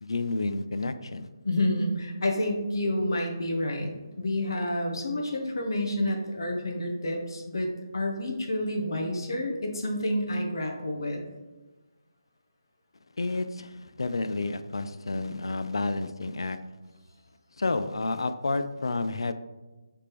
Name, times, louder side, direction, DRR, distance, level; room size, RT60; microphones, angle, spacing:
voice 1, 0.0-1.3 13.2-16.6 17.6-19.3, left 3 dB, 80° left, 10 dB, 0.3 m, -30 dB
voice 2, 1.4-11.2, left 1 dB, 60° left, 1 dB, 0.8 m, -29 dB
5.0 x 3.3 x 2.9 m, 1.2 s
hypercardioid pair, 180°, 3 cm